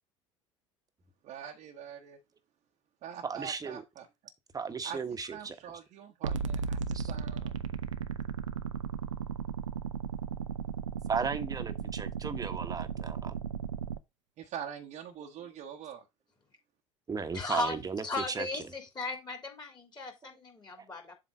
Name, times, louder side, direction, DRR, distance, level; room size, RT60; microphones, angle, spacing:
voice 1, 1.2-2.2 3.0-4.1 4.8-7.5 14.4-16.0, right 8 dB, 50° right, 1.1 m, -44 dB
voice 2, 3.2-3.8 4.5-5.6 6.9-7.1 11.1-13.4 17.1-18.6 20.2-20.3 20.8-20.9, right 5 dB, 25° right, 1.2 m, -35 dB
sound 1, 6.2-14.0, right 6 dB, 85° right, 0.6 m, -35 dB
voice 3, 17.3-17.8 18.0-21.1, left 3 dB, 25° left, 3.3 m, -36 dB
7.6 x 3.3 x 5.4 m
hypercardioid pair, 70°, 16 cm